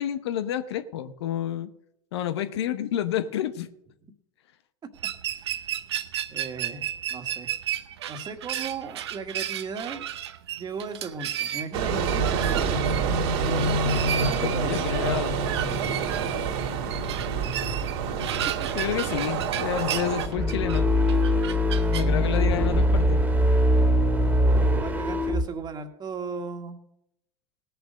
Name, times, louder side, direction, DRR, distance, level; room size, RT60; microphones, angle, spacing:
voice 1, 0.0-1.7 2.1-3.7 14.4-15.4 18.7-20.9 21.9-23.2, left 11 dB, 80° left, 12 dB, 0.9 m, -29 dB
sound 1, 5.0-22.1, right 11 dB, 85° right, 0.7 m, -34 dB
voice 2, 5.3-5.7 6.3-7.5 8.1-10.1 10.5-12.9 13.4-15.0 18.6-18.7 24.4-26.8, right 5 dB, 30° right, 6 dB, 1.8 m, -36 dB
sound 2, 11.7-20.3, right 5 dB, 70° right, 2.4 m, -27 dB
sound 3, 20.2-25.4, equal, 10° right, 1.9 m, -22 dB
17.0 x 6.9 x 6.4 m, 0.79 s
hypercardioid pair, 95°, 14 cm